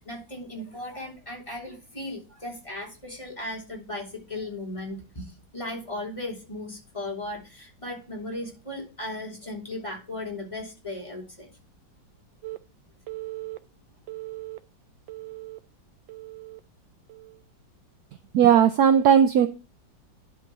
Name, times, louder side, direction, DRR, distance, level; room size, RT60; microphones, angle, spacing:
voice 1, 0.0-11.5, left 1 dB, 15° left, -1 dB, 2.9 m, -36 dB
Telephone, 12.4-12.6 13.1-13.6 14.1-14.6 15.1-15.6 16.1-16.6 17.1-17.4 18.4-18.6, right 19 dB, 85° right, 1.4 m, -38 dB
voice 2, 18.3-19.5, right 8 dB, 70° right, 10 dB, 1.0 m, -17 dB
11.0 x 3.9 x 5.9 m, 0.31 s
omnidirectional pair, 2.0 m